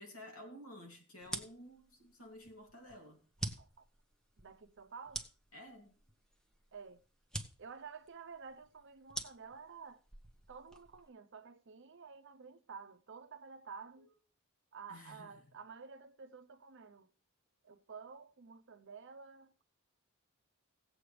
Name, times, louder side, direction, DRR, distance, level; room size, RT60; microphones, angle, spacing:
voice 1, 0.0-3.2 5.5-5.9 14.0-14.1 14.9-15.4, left 1 dB, 90° left, 2.5 m, -52 dB
sound 1, 1.2-11.1, right 1 dB, 5° left, 0.9 m, -47 dB
voice 2, 4.4-5.2 6.7-7.0 7.6-10.0 10.5-14.1 14.7-17.1 17.6-19.8, right 5 dB, 60° right, 0.7 m, -51 dB
18.0 x 7.9 x 3.3 m
head